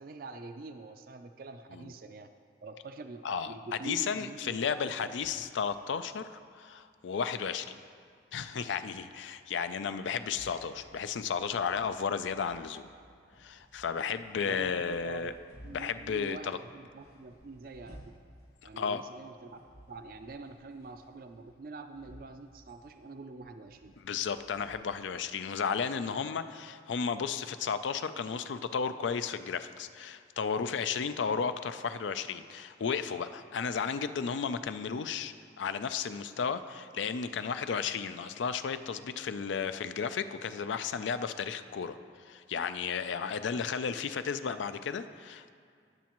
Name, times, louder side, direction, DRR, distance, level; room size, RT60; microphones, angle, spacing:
voice 1, 0.0-2.3 2.6-5.1 5.4-5.5 14.4-15.3 15.6-18.1 18.6-19.6 19.9-23.9, right 3 dB, 50° right, 7 dB, 0.4 m, -46 dB
voice 2, 3.8-7.8 8.3-12.9 13.4-15.3 15.7-16.6 18.8-19.0 24.0-45.5, left 6 dB, 80° left, 11 dB, 0.4 m, -33 dB
sound 1, 5.2-25.1, equal, 55° left, 1.6 m, -58 dB
17.5 x 7.2 x 3.0 m, 2.2 s
head